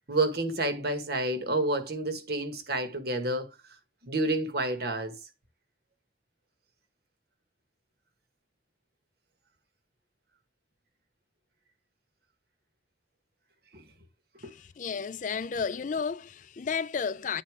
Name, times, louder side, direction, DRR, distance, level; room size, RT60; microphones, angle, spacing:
voice 1, 0.1-3.5 4.0-5.1 13.7-13.8 14.4-14.5, right 2 dB, 55° right, 1.5 m, -29 dB
voice 2, 14.4-17.4, left 6 dB, 45° left, 0.4 m, -32 dB
9.5 x 4.2 x 4.8 m
head